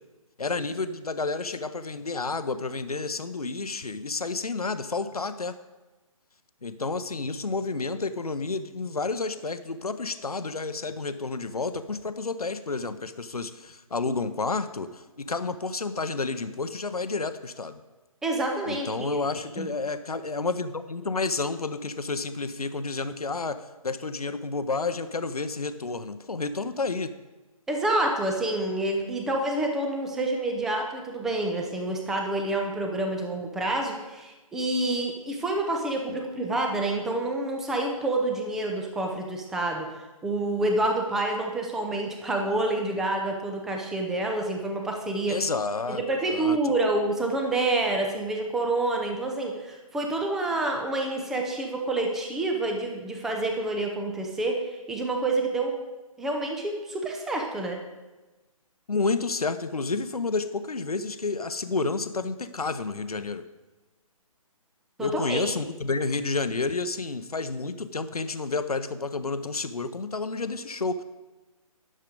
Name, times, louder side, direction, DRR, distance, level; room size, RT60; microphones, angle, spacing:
voice 1, 0.4-5.5 6.6-17.8 18.7-27.1 36.1-36.2 45.3-46.7 58.9-63.4 65.0-71.0, left 3 dB, 85° left, 11 dB, 0.6 m, -30 dB
voice 2, 18.2-18.9 19.6-19.7 27.7-39.9 40.2-45.4 45.9-55.7 56.2-57.8 65.0-65.4, right 2 dB, ahead, 2 dB, 0.4 m, -28 dB
11.0 x 6.6 x 5.0 m, 1.2 s
figure-of-eight pair, 140°, 19 cm